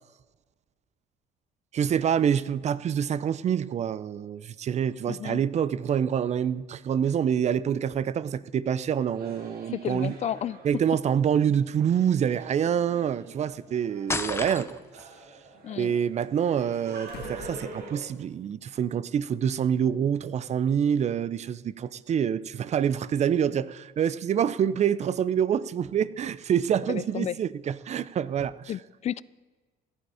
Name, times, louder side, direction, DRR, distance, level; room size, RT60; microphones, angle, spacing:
voice 1, 1.7-10.1 10.6-14.8 15.8-28.7, right 8 dB, 40° right, 0.5 m, -26 dB
voice 2, 5.1-5.4 9.7-10.6 15.6-15.9 26.9-27.4 28.7-29.2, left 10 dB, 40° left, 0.4 m, -32 dB
sound 1, 8.9-18.0, right 3 dB, 65° right, 2.7 m, -45 dB
sound 2, 13.4-13.5 14.3-15.3 16.2-18.5 18.8-18.9 20.5-20.6, left 7 dB, 80° left, 1.6 m, -50 dB
sound 3, 14.1-15.0, left 3 dB, 15° left, 0.8 m, -31 dB
15.5 x 11.5 x 4.9 m
cardioid pair, 110°, 17 cm